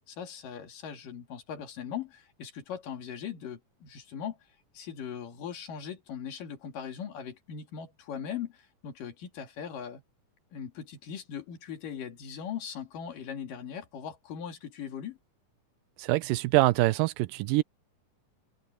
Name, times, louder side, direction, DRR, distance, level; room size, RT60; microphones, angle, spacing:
voice 1, 0.1-4.4 4.7-10.0 10.5-15.2, left 8 dB, 75° left, 4.0 m, -39 dB
voice 2, 16.0-17.6, right 19 dB, 90° right, 2.3 m, -24 dB
open air
omnidirectional pair, 3.9 m